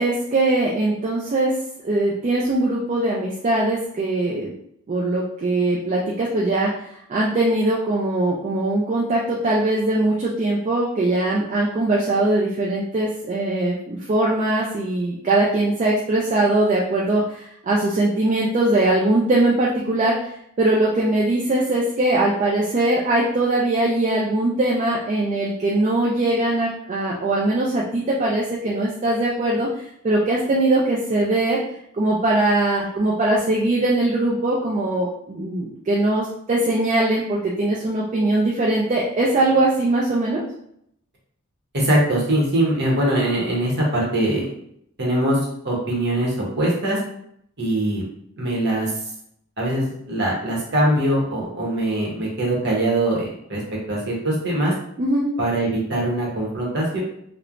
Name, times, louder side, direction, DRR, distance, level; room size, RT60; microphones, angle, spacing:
voice 1, 0.0-1.5 1.8-4.5 4.9-6.7 7.1-20.2 20.6-29.7 30.0-31.6 32.0-40.4 55.0-55.3, right 2 dB, 30° right, -4 dB, 0.3 m, -21 dB
voice 2, 41.7-44.5 45.0-45.4 45.6-47.0 47.6-48.0 48.4-48.9 49.6-53.6 53.9-54.7 55.4-57.0, right 1 dB, 50° right, -3 dB, 0.9 m, -22 dB
3.1 x 2.1 x 2.4 m, 0.72 s
head